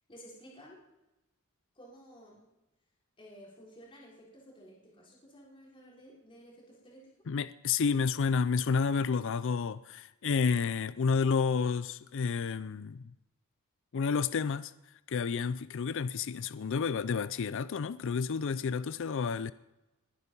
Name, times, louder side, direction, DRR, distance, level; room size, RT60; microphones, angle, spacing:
voice 1, 0.1-0.8 1.7-2.4 3.2-7.1, equal, 25° left, 4.4 m, -53 dB
voice 2, 7.3-13.1 13.9-14.7 15.1-19.5, left 5 dB, 60° left, 0.4 m, -30 dB
21.0 x 10.0 x 5.4 m
head